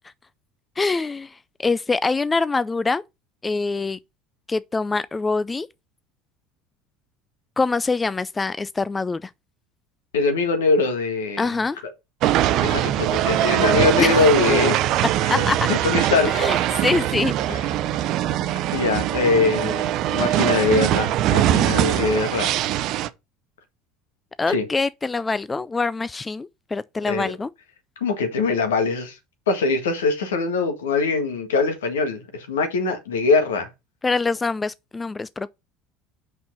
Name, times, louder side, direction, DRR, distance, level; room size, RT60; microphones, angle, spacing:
voice 1, 0.8-3.0 3.4-4.0 4.5-5.7 7.6-9.3 11.4-11.8 14.0-14.3 15.3-15.6 16.2-17.3 24.4-27.5 34.0-35.5, left 3 dB, 20° left, 0.3 m, -24 dB
voice 2, 10.1-11.5 12.3-14.8 15.2-16.7 17.5-17.6 18.7-22.5 24.5-24.6 27.1-27.3 28.0-29.2 29.5-33.7, left 4 dB, 75° left, 1.7 m, -22 dB
sound 1, 12.2-23.1, right 13 dB, 55° right, 0.6 m, -22 dB
5.9 x 5.5 x 5.4 m
hypercardioid pair, 70°, 0 cm